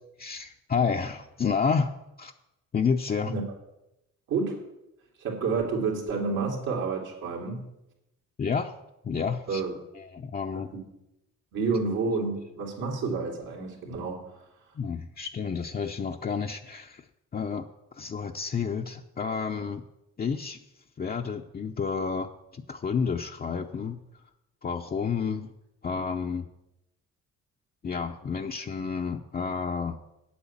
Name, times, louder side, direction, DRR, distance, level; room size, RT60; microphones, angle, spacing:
voice 1, 0.2-2.3 2.7-3.4 8.4-8.8 9.0-9.6 9.9-10.7 14.8-17.0 17.3-17.7 17.9-19.8 20.2-20.6 21.0-24.0 24.6-25.5 25.8-26.5 27.8-30.0, left 5 dB, 30° left, 2 dB, 0.6 m, -30 dB
voice 2, 4.3-4.6 5.2-7.7 9.5-9.7 10.5-10.9 11.5-14.4, right 4 dB, 80° right, -1 dB, 3.1 m, -29 dB
8.6 x 8.4 x 7.3 m, 0.90 s
cardioid pair, 90°, 30 cm